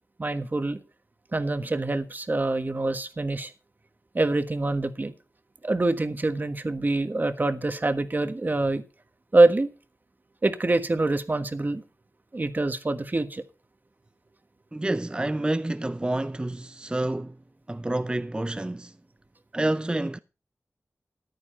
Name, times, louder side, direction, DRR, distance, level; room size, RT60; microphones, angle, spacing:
voice 1, 0.2-0.8 1.3-3.5 4.1-5.1 5.6-8.8 9.3-9.7 10.4-11.8 12.3-13.4, right 2 dB, 35° right, 1.4 m, -25 dB
voice 2, 14.7-17.4 17.7-18.9 19.5-20.2, right 1 dB, 15° right, 0.5 m, -28 dB
14.0 x 9.7 x 4.3 m
wide cardioid pair, 80°, 5 cm